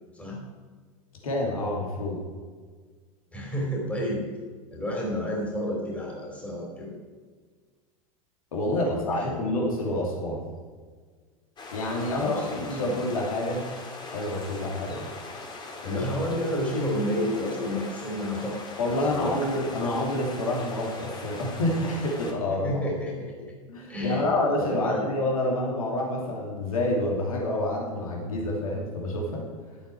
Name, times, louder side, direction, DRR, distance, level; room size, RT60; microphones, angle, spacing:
voice 1, 1.2-2.2 8.5-10.4 11.7-13.6 14.1-15.0 15.8-16.0 18.8-22.8 23.7-29.5, left 1 dB, 75° left, -1 dB, 2.8 m, -28 dB
voice 2, 3.3-4.2 4.7-7.0 8.6-9.3 12.1-13.0 15.8-18.6 18.9-19.6 22.6-23.2 23.9-24.3 24.6-25.1, equal, 5° left, -2 dB, 3.1 m, -30 dB
sound 1, 11.6-22.3, left 3 dB, 25° left, 2.1 m, -41 dB
11.5 x 8.6 x 4.8 m, 1.5 s
figure-of-eight pair, 90°, 18 cm